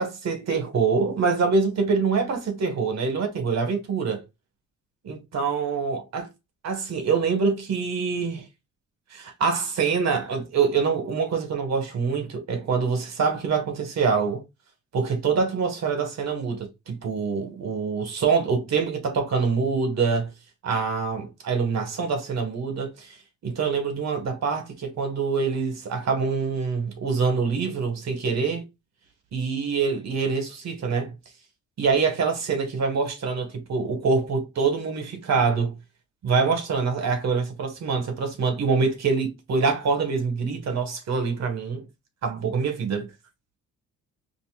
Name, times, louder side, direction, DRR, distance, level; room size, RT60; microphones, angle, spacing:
voice 1, 0.0-4.2 5.0-6.3 6.6-8.4 9.1-14.4 14.9-20.3 20.6-23.2 23.4-28.6 29.3-31.1 31.8-35.8 36.2-41.8 42.2-43.1, right 5 dB, 60° right, 1.6 m, -25 dB
5.3 x 2.8 x 2.4 m
cardioid pair, 90°, 30 cm